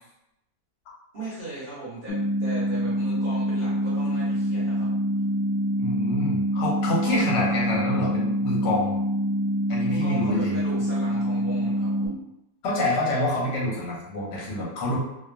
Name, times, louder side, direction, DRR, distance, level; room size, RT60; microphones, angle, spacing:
voice 1, 1.1-4.9 7.0-7.5 9.8-12.2 12.9-13.0, right 2 dB, 40° right, -9 dB, 0.7 m, -37 dB
sound 1, 2.1-12.1, equal, 65° left, 1.0 m, -25 dB
voice 2, 5.8-9.0 9.7-10.6 12.6-15.0, left 1 dB, 90° left, -4 dB, 1.4 m, -27 dB
2.8 x 2.3 x 2.4 m, 0.88 s
omnidirectional pair, 1.8 m